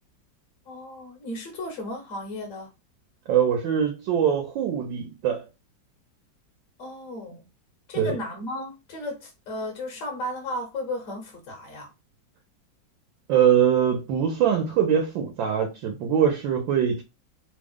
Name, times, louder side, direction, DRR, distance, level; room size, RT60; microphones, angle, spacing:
voice 1, 0.7-2.7 6.8-7.5 7.9-11.9, left 1 dB, 60° left, 0.9 m, -34 dB
voice 2, 3.3-5.5 7.9-8.2 13.3-17.0, right 8 dB, 85° right, 1.5 m, -23 dB
3.3 x 2.1 x 3.5 m
omnidirectional pair, 2.0 m